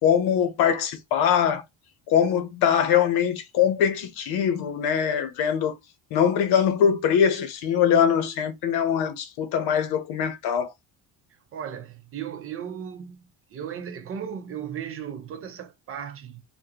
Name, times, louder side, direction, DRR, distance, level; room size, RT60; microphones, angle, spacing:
voice 1, 0.0-1.6 2.1-5.7 6.1-10.7, left 8 dB, 80° left, 0.8 m, -22 dB
voice 2, 11.5-13.3 13.5-16.4, right 8 dB, 35° right, 0.5 m, -36 dB
3.7 x 2.1 x 2.8 m
cardioid pair, 165°, 38 cm